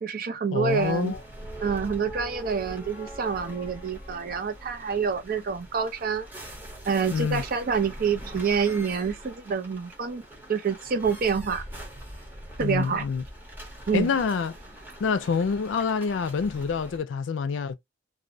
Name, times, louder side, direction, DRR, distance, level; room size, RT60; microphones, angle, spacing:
voice 1, 0.0-1.1 1.6-6.3 6.8-10.2 10.5-11.6 12.6-13.0 13.9-14.1, right 6 dB, 50° right, 0.5 m, -27 dB
voice 2, 0.5-1.2 7.1-7.4 12.6-13.2 13.9-14.5 15.0-17.7, left 5 dB, 80° left, 0.4 m, -26 dB
sound 1, 0.7-17.0, right 1 dB, 10° right, 0.8 m, -42 dB
2.6 x 2.0 x 2.5 m
head